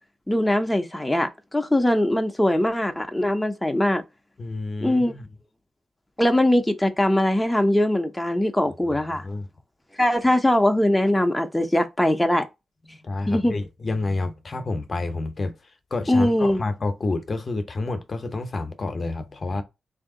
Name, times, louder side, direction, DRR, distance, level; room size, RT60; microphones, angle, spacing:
voice 1, 0.3-4.0 4.8-5.1 6.2-9.3 10.0-12.4 13.3-13.5 16.1-16.6, left 1 dB, 10° left, 0.7 m, -21 dB
voice 2, 4.4-5.3 9.2-9.5 13.0-15.6 15.9-19.6, left 2 dB, 50° left, 0.8 m, -29 dB
3.3 x 2.7 x 3.7 m
cardioid pair, 50°, 0 cm